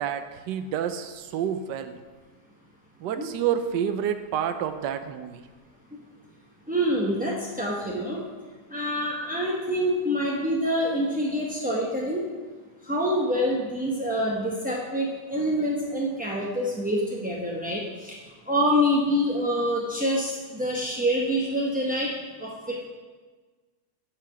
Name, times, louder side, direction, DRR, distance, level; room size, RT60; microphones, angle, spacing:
voice 1, 0.0-2.0 3.0-5.4, right 9 dB, 90° right, 9 dB, 1.3 m, -29 dB
voice 2, 6.7-8.2 8.7-12.2 12.9-18.1 18.5-22.1 22.4-22.9, equal, 10° right, -4 dB, 0.4 m, -26 dB
9.1 x 4.9 x 5.9 m, 1.4 s
omnidirectional pair, 1.9 m